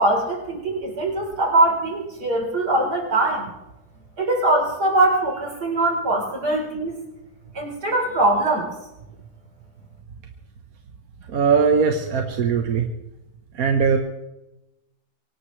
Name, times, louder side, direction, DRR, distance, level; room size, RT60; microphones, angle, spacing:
voice 1, 0.0-3.5 4.2-7.0 7.5-8.7, right 2 dB, 80° right, -1 dB, 4.5 m, -22 dB
voice 2, 11.3-12.8 13.5-14.0, right 6 dB, 65° right, 4 dB, 1.6 m, -20 dB
24.5 x 17.5 x 3.2 m, 0.96 s
omnidirectional pair, 1.7 m